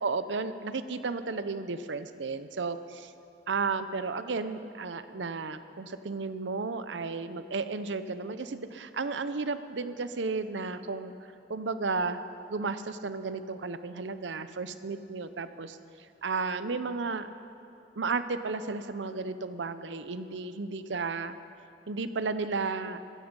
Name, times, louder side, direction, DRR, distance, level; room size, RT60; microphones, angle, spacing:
voice 1, 0.0-3.1 3.5-11.1 11.5-12.2 12.5-15.8 16.2-17.3 18.0-21.3 21.9-23.0, right 4 dB, 80° right, 11 dB, 0.7 m, -33 dB
15.5 x 15.0 x 5.4 m, 2.7 s
head